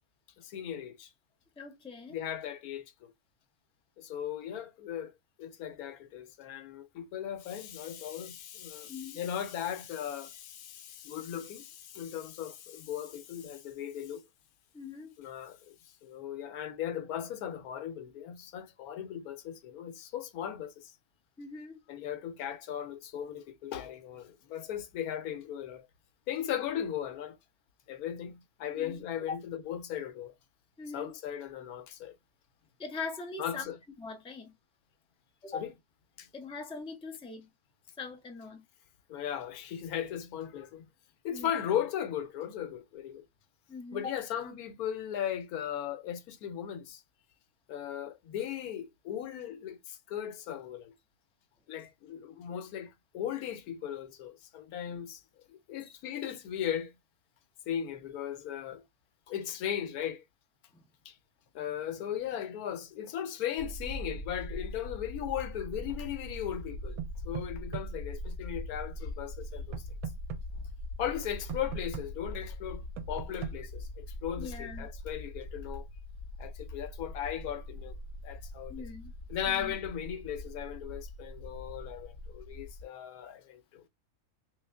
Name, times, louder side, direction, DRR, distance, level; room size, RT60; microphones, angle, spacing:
voice 1, 0.4-1.1 2.1-3.1 4.0-5.1 5.4-14.2 15.2-15.8 16.0-21.0 21.9-25.9 26.3-27.4 27.9-30.3 30.9-32.2 33.4-33.8 35.5-35.7 36.2-36.3 39.1-40.9 41.2-43.2 43.9-47.0 47.7-50.9 51.7-55.2 55.5-56.9 57.7-58.8 59.3-60.2 61.0-61.2 61.5-69.8 71.0-75.9 76.4-78.0 78.2-78.9 79.3-83.8, left 10 dB, 85° left, 1.1 m, -37 dB
voice 2, 1.6-2.2 8.9-9.2 14.7-15.1 21.4-21.8 28.7-29.0 29.3-29.4 30.8-31.2 32.8-33.6 34.0-34.5 35.4-35.7 36.3-37.5 38.0-38.7 41.3-41.5 43.7-44.2 55.8-55.9 60.7-60.8 70.5-70.6 74.4-74.9 78.7-79.1 79.5-79.8, left 4 dB, 5° left, 0.4 m, -41 dB
sound 1, 63.6-82.8, left 1 dB, 55° left, 1.1 m, -42 dB
sound 2, 67.0-67.9 69.7-70.4 71.5-72.1 73.0-73.6, right 11 dB, 80° right, 1.0 m, -38 dB
3.2 x 2.6 x 3.3 m
omnidirectional pair, 1.5 m